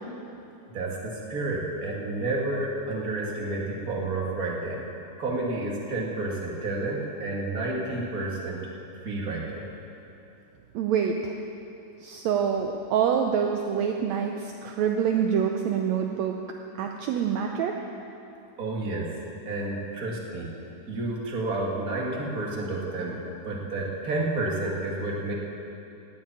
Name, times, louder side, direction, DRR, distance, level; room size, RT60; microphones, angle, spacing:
voice 1, 0.7-4.9 5.2-8.6 9.0-9.7 18.6-19.1 19.5-20.5 20.9-23.2 23.4-25.3, right 2 dB, 30° right, -2 dB, 2.1 m, -30 dB
voice 2, 10.8-11.3 12.0-16.4 16.8-17.8, right 7 dB, 75° right, 3 dB, 1.7 m, -26 dB
18.5 x 7.5 x 8.7 m, 2.8 s
omnidirectional pair, 3.7 m